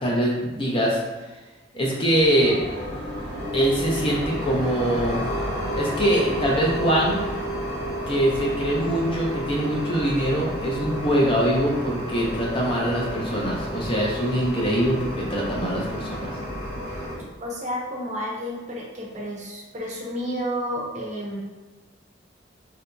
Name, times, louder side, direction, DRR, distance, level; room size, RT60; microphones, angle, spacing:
voice 1, 0.0-1.0 1.7-2.6 3.5-5.2 5.7-7.2 8.1-16.3, equal, 30° left, -3 dB, 0.6 m, -23 dB
sound 1, 2.2-17.2, equal, 75° left, 1.5 m, -31 dB
voice 2, 17.4-21.4, equal, 40° right, -3 dB, 0.6 m, -31 dB
3.8 x 2.7 x 2.2 m, 1.2 s
head